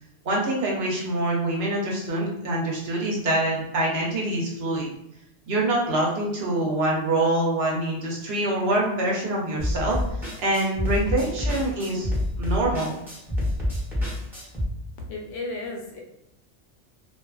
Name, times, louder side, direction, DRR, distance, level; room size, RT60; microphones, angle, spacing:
voice 1, 0.2-4.9 5.5-10.0 10.4-12.1 12.4-12.9, right 1 dB, 60° right, -2 dB, 0.9 m, -25 dB
sound 1, 9.6-14.7, left 1 dB, ahead, 0.7 m, -27 dB
voice 2, 15.1-16.0, left 2 dB, 85° left, 1 dB, 1.0 m, -33 dB
2.5 x 2.3 x 2.3 m, 0.79 s
omnidirectional pair, 1.3 m